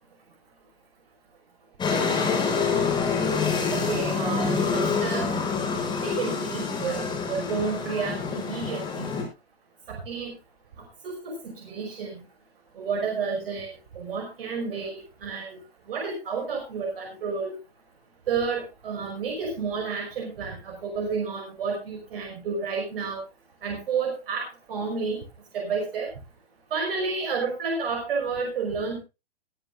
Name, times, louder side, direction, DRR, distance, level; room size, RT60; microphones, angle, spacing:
sound 1, 1.8-9.2, left 5 dB, 15° left, 7.6 m, -26 dB
voice 1, 3.7-5.3 6.0-9.1 9.9-10.3 11.0-12.2 12.8-15.6 15.9-17.5 18.3-23.2 23.6-25.2 25.5-26.1 26.7-29.0, right 5 dB, 65° right, 1 dB, 5.7 m, -30 dB
22.0 x 11.0 x 2.5 m, 0.28 s
hypercardioid pair, 135°, 31 cm